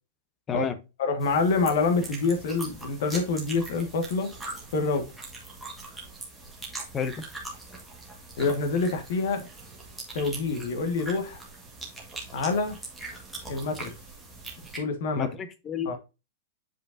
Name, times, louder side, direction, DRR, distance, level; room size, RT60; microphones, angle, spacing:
voice 1, 1.0-4.3 4.7-5.1 8.4-9.5 10.1-11.4 12.3-12.8 13.5-13.9 14.8-15.3 15.8-16.0, left 4 dB, 45° left, 1.5 m, -26 dB
sound 1, 1.2-14.8, right 2 dB, ahead, 1.4 m, -42 dB
voice 2, 15.2-16.0, left 7 dB, 15° left, 0.6 m, -30 dB
7.6 x 5.1 x 2.6 m
supercardioid pair, 180°, 0 cm